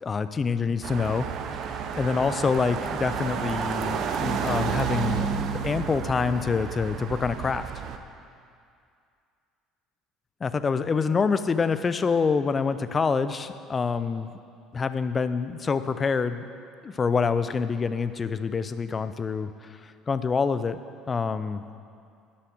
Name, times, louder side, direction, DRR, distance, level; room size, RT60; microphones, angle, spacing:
voice 1, 0.0-1.3 2.0-7.7 10.4-14.3 14.7-16.4 16.8-19.5 20.1-20.8 21.1-21.6, left 5 dB, 30° left, 12 dB, 0.5 m, -26 dB
sound 1, 0.8-8.0, right 6 dB, 55° right, 0.7 m, -30 dB
11.5 x 5.7 x 6.4 m, 2.4 s
hypercardioid pair, 60°, 0 cm